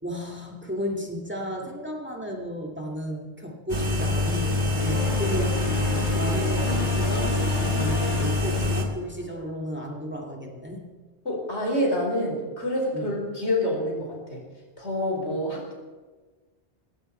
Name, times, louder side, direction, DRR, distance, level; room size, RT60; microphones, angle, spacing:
voice 1, 0.0-5.8 6.1-10.8 12.9-13.1, equal, 10° right, 0 dB, 2.3 m, -33 dB
sound 1, 3.7-8.8, left 2 dB, 40° right, 2.1 m, -25 dB
sound 2, 4.8-9.3, left 3 dB, 45° left, 1.6 m, -34 dB
voice 2, 11.2-14.4 14.8-15.7, left 1 dB, 80° left, -1 dB, 4.6 m, -27 dB
19.5 x 15.5 x 4.5 m, 1.3 s
omnidirectional pair, 1.1 m